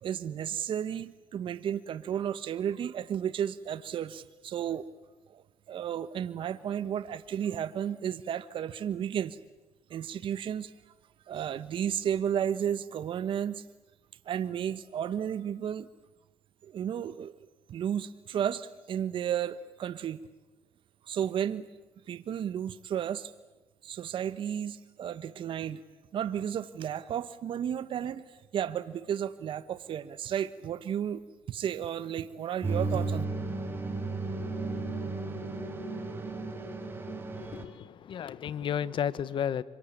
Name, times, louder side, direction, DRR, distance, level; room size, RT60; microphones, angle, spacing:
voice 1, 0.0-4.8 5.3-9.4 9.9-10.7 11.3-13.6 14.2-15.9 16.6-20.2 21.0-21.7 22.1-23.3 23.8-25.8 26.1-31.2 31.5-33.2, right 9 dB, 60° right, 13 dB, 1.2 m, -33 dB
sound 1, 32.6-37.6, right 3 dB, 25° right, 5.4 m, -34 dB
voice 2, 37.3-39.6, left 9 dB, 55° left, 17 dB, 1.3 m, -33 dB
26.0 x 24.0 x 8.8 m, 1.1 s
supercardioid pair, 80°, 10 cm